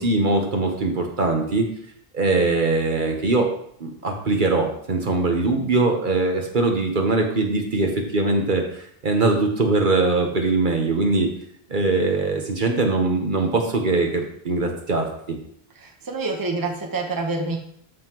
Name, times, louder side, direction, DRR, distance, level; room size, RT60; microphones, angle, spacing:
voice 1, 0.0-1.7 2.1-3.5 3.8-11.3 11.7-15.4, right 3 dB, 55° right, 3 dB, 1.2 m, -22 dB
voice 2, 15.8-17.6, right 3 dB, 20° right, 3 dB, 1.0 m, -27 dB
13.0 x 5.6 x 3.0 m, 0.67 s
omnidirectional pair, 1.1 m